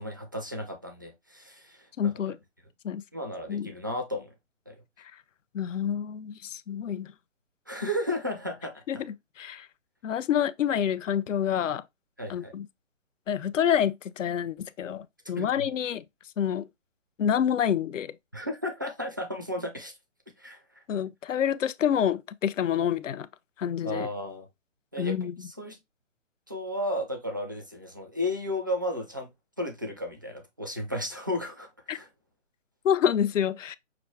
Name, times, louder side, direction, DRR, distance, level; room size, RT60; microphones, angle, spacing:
voice 1, 0.0-2.1 3.1-4.3 4.7-4.8 7.7-9.0 12.2-12.5 15.4-15.7 18.3-19.9 20.4-20.8 23.8-24.5 24.9-25.8 26.5-29.3 29.6-32.1, left 1 dB, 20° right, 0.3 m, -34 dB
voice 2, 2.0-2.4 2.8-3.0 3.5-3.7 5.5-7.1 8.9-9.0 9.4-9.7 10.0-11.8 12.3-12.7 13.3-16.0 16.4-16.7 17.2-18.1 20.9-23.3 23.6-24.1 25.0-25.3 31.9-32.0 32.8-33.8, left 9 dB, 80° left, 0.6 m, -27 dB
5.9 x 2.5 x 3.3 m
hypercardioid pair, 150°, 37 cm